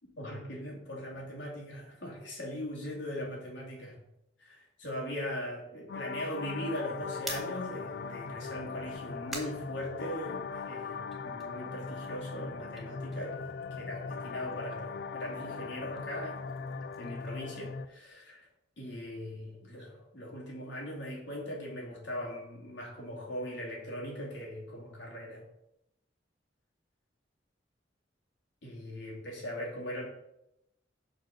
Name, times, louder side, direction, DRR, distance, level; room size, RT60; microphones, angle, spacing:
voice 1, 0.2-4.0 4.4-13.4 13.7-16.4 17.0-18.5 18.8-25.4 28.6-30.0, left 1 dB, 80° left, -2 dB, 2.5 m, -40 dB
sound 1, 5.9-17.9, left 5 dB, 60° left, 0.4 m, -40 dB
sound 2, 7.2-10.6 11.0-13.9 14.2-18.3, right 1 dB, ahead, 1.5 m, -49 dB
6.5 x 4.1 x 6.2 m, 0.86 s
head